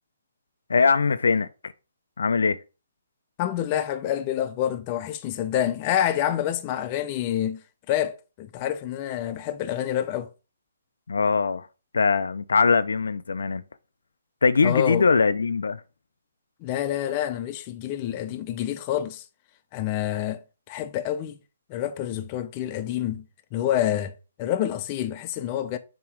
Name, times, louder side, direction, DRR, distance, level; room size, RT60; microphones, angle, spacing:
voice 1, 0.7-1.5 2.2-2.6 11.1-11.7 11.9-13.6 14.4-15.8, left 5 dB, 80° left, 0.5 m, -21 dB
voice 2, 3.4-7.6 7.9-10.3 14.6-15.1 16.6-19.2 19.7-20.4 20.7-21.4 21.7-23.2 23.5-25.8, left 11 dB, 25° left, 0.6 m, -27 dB
7.1 x 3.0 x 4.9 m
hypercardioid pair, 155°, 0 cm